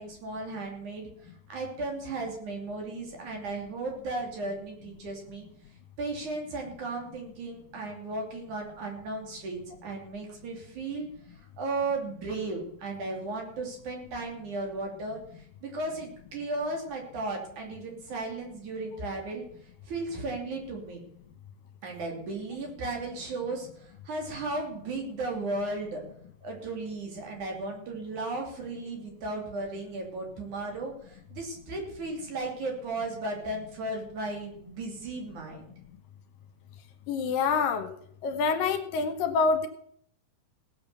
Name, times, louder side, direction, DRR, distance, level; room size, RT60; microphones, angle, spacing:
voice 1, 0.0-5.5 6.0-19.4 19.8-21.0 21.8-26.0 26.4-35.7, right 2 dB, 60° right, 2 dB, 4.3 m, -35 dB
voice 2, 37.1-37.9 38.2-39.7, left 5 dB, 75° left, 7 dB, 2.8 m, -26 dB
17.0 x 7.8 x 6.9 m, 0.64 s
omnidirectional pair, 4.1 m